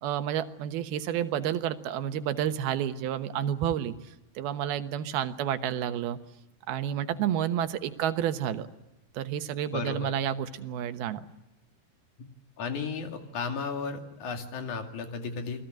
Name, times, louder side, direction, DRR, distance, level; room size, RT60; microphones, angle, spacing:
voice 1, 0.0-6.2 6.7-8.7 9.1-11.3, right 10 dB, 80° right, 9 dB, 3.1 m, -30 dB
voice 2, 9.7-10.1 12.6-15.6, left 5 dB, 55° left, 5 dB, 3.6 m, -34 dB
29.5 x 20.0 x 9.1 m, 0.98 s
omnidirectional pair, 4.4 m